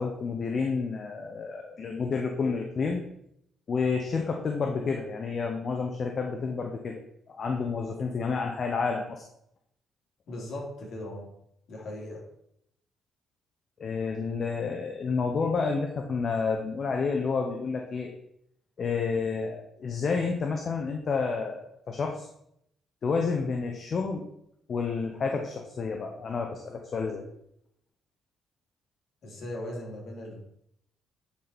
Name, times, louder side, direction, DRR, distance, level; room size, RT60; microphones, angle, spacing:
voice 1, 0.0-3.0 3.7-7.0 7.3-9.2 13.8-18.1 18.8-22.3 23.0-24.2 24.7-27.3, left 4 dB, 50° left, 2 dB, 0.9 m, -30 dB
voice 2, 10.3-11.3 11.7-12.2 29.2-30.4, left 1 dB, 65° left, -3 dB, 3.1 m, -38 dB
9.7 x 4.2 x 4.4 m, 0.75 s
cardioid pair, 90°, 0 cm